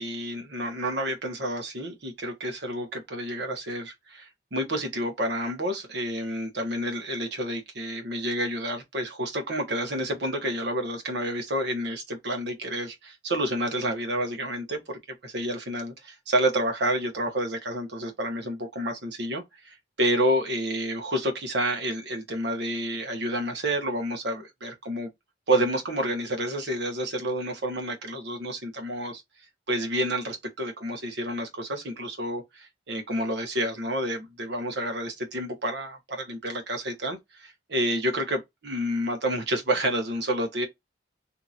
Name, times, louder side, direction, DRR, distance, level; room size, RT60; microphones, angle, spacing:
voice 1, 0.0-25.1 25.5-29.2 29.7-40.7, right 1 dB, 70° right, 1.0 m, -29 dB
2.8 x 2.7 x 2.4 m
head